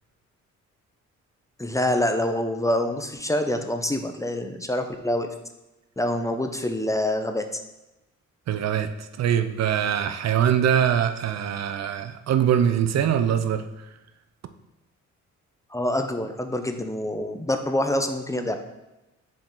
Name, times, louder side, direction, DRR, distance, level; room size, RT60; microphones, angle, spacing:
voice 1, 1.6-5.3 6.0-7.6 15.7-18.6, left 1 dB, 10° left, 6 dB, 0.6 m, -26 dB
voice 2, 8.5-13.6, right 9 dB, 60° right, 10 dB, 0.6 m, -23 dB
7.3 x 5.0 x 3.7 m, 1.0 s
cardioid pair, 90°, 30 cm